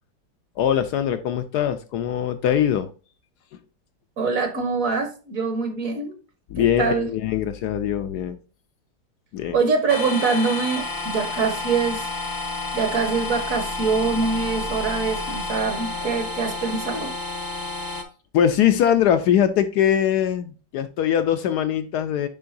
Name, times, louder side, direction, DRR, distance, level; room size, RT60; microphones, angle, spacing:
voice 1, 0.6-2.9 6.5-8.4 9.3-9.6 18.3-22.3, left 9 dB, 70° left, 9 dB, 1.1 m, -22 dB
voice 2, 4.2-6.1 6.6-7.1 9.5-12.1 12.7-17.1, right 4 dB, 55° right, 5 dB, 1.4 m, -24 dB
sound 1, 9.9-18.0, left 2 dB, 20° left, 0.6 m, -30 dB
10.5 x 3.7 x 2.6 m, 0.35 s
omnidirectional pair, 1.9 m